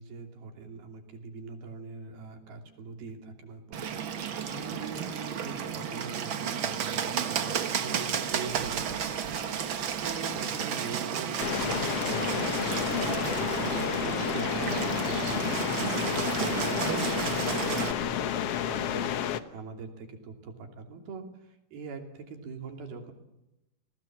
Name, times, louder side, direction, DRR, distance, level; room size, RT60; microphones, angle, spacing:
voice 1, 0.0-4.0 4.5-9.2 10.0-23.1, right 4 dB, 80° right, 4 dB, 4.8 m, -43 dB
Bird, 3.7-17.9, right 7 dB, 65° right, 1.2 m, -32 dB
sound 1, 11.4-19.4, left 10 dB, 85° left, 1.3 m, -30 dB
29.5 x 19.0 x 7.5 m, 0.92 s
omnidirectional pair, 4.3 m